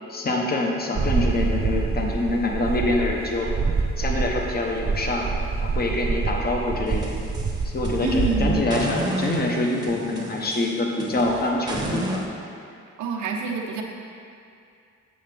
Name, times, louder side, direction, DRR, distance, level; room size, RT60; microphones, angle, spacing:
voice 1, 0.1-3.5 4.0-5.3 5.6-7.2 7.6-12.2, left 2 dB, 30° left, 0 dB, 1.1 m, -25 dB
sound 1, 0.9-8.5, right 4 dB, 30° right, 0.7 m, -26 dB
sound 2, 6.9-8.3 8.7-12.2, right 1 dB, 15° right, 1.0 m, -32 dB
voice 2, 8.0-8.6 13.0-13.8, right 4 dB, 75° right, 0 dB, 1.0 m, -26 dB
7.9 x 6.7 x 3.4 m, 2.4 s
cardioid pair, 90°, 30 cm